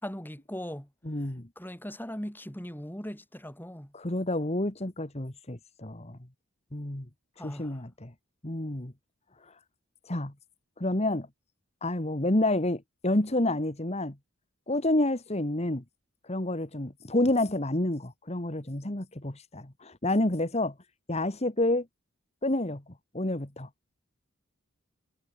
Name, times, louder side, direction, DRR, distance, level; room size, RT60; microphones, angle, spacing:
voice 1, 0.0-0.9 1.5-3.9 7.4-7.8, equal, 10° left, 5.0 m, -39 dB
voice 2, 1.1-1.5 3.9-6.2 6.7-7.1 7.4-8.1 8.4-8.9 9.4-9.5 10.1-10.3 10.8-11.3 11.8-14.1 14.7-15.8 16.2-20.7 21.1-21.9 22.4-22.8 23.1-23.7, left 1 dB, 30° left, 1.9 m, -29 dB
head